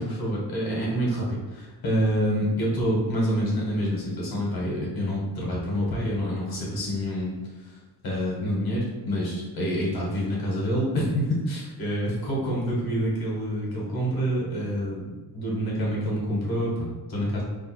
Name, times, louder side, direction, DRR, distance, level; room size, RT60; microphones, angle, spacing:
voice 1, 0.0-7.3 7.6-7.8 8.0-17.4, equal, 65° left, -4 dB, 1.5 m, -27 dB
3.5 x 2.5 x 4.3 m, 1.2 s
wide cardioid pair, 135°, 40 cm